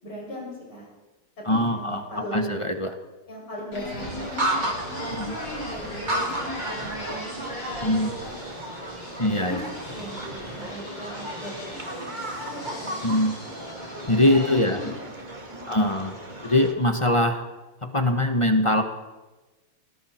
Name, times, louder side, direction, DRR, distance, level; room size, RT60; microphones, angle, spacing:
voice 1, 0.0-0.9 1.4-2.6 3.3-4.6 5.0-7.1 7.6-8.3 9.4-9.6 9.9-13.5 14.2-15.0 15.5-15.6, equal, 80° left, -3 dB, 7.8 m, -39 dB
voice 2, 1.4-2.0 2.3-2.9 5.1-5.3 7.8-8.1 9.2-9.6 13.0-13.3 14.1-14.8 15.7-16.2 16.4-17.4 17.8-18.8, left 1 dB, 20° left, 6 dB, 1.0 m, -22 dB
sound 1, 3.7-14.9, equal, 60° left, 8.0 m, -38 dB
sound 2, 4.0-16.7, right 1 dB, 20° right, 2.2 m, -34 dB
29.5 x 20.5 x 4.5 m, 1.2 s
omnidirectional pair, 2.3 m